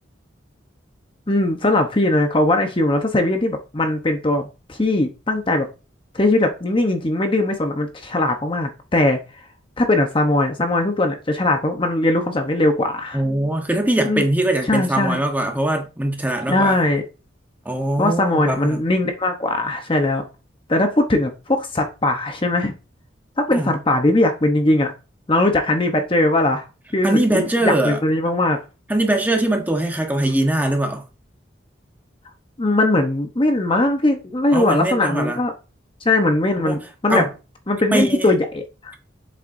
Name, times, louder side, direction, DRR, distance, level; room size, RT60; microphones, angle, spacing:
voice 1, 1.3-5.7 6.1-9.2 9.8-13.2 14.0-14.3 14.7-15.2 16.5-17.0 18.0-20.2 20.7-22.7 23.4-24.9 25.3-26.6 26.9-28.6 32.6-35.5 36.0-37.2 37.7-38.9, left 2 dB, 30° left, 0.9 m, -20 dB
voice 2, 13.1-16.8 17.6-18.8 23.5-23.7 27.0-28.0 28.9-31.0 34.5-35.4 36.6-36.8 37.1-37.3 37.9-38.3, right 1 dB, 10° right, 1.1 m, -21 dB
7.7 x 6.6 x 2.7 m
head